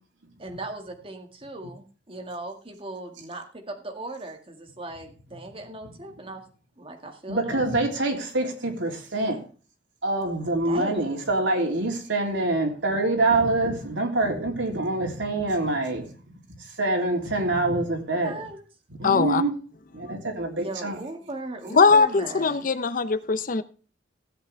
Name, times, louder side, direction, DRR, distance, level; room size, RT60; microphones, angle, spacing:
voice 1, 0.4-6.4 6.8-7.7 10.7-11.0 18.2-18.6 20.6-22.6, right 2 dB, 30° right, 2.0 m, -38 dB
voice 2, 7.3-9.4 10.0-16.2 16.8-18.3 19.0-19.5 19.9-21.0, right 2 dB, 90° right, 3.2 m, -25 dB
voice 3, 19.0-19.4 21.7-23.6, left 4 dB, 45° left, 0.7 m, -20 dB
16.0 x 8.2 x 3.4 m
head